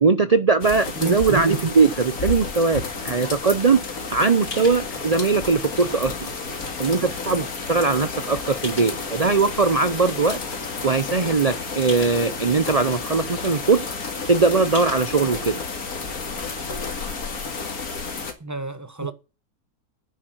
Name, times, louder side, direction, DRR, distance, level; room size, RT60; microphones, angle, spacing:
voice 1, 0.0-6.3 6.8-10.4 10.8-13.9 14.3-15.6 19.0-19.1, right 4 dB, 60° right, 0.3 m, -20 dB
sound 1, 0.6-18.3, left 4 dB, 65° left, 2.5 m, -31 dB
sound 2, 2.9-3.9 4.5-4.8 5.5-5.6 6.1-7.0 7.7-7.8 8.6-9.2 9.6-10.4 10.8-10.9 11.1-11.2 11.9-12.2 12.8-12.9 13.1-13.7 14.0-14.1 14.7-15.1, left 2 dB, 35° left, 3.9 m, -40 dB
voice 2, 18.4-19.1, right 2 dB, 10° right, 1.0 m, -31 dB
10.0 x 8.4 x 7.7 m
omnidirectional pair, 1.7 m